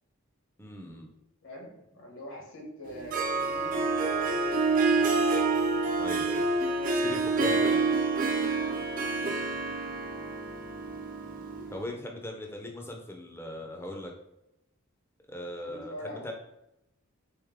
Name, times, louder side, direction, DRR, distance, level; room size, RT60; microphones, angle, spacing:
voice 1, 0.6-1.1 6.0-6.4 6.9-7.9 11.7-14.1 15.3-16.3, left 1 dB, 10° left, 2 dB, 0.6 m, -39 dB
voice 2, 1.4-4.6 8.5-9.2 11.5-11.9 15.6-16.3, equal, 65° left, -1 dB, 1.5 m, -44 dB
Harp, 2.9-11.8, right 3 dB, 40° right, 0.5 m, -28 dB
3.7 x 3.5 x 3.6 m, 0.85 s
head